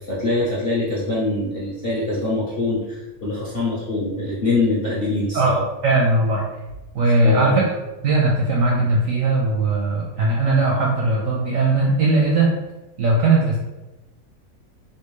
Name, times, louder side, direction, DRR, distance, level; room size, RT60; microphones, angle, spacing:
voice 1, 0.1-5.6 7.2-7.6, left 2 dB, 55° left, -8 dB, 0.6 m, -23 dB
voice 2, 5.3-6.5 6.9-7.7 8.0-12.6 13.0-13.6, right 2 dB, 70° right, -3 dB, 0.8 m, -19 dB
3.4 x 2.6 x 3.0 m, 1.0 s
omnidirectional pair, 1.9 m